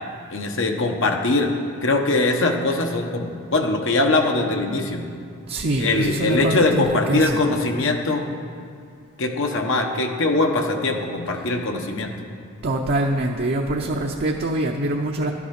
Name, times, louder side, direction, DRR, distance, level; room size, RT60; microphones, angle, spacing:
voice 1, 0.3-1.5 1.8-5.0 5.8-8.4 9.2-12.1, left 2 dB, 60° left, 3 dB, 1.1 m, -22 dB
voice 2, 5.5-7.5 12.6-15.3, right 1 dB, 50° right, 0 dB, 0.7 m, -24 dB
12.5 x 9.7 x 5.9 m, 2.4 s
head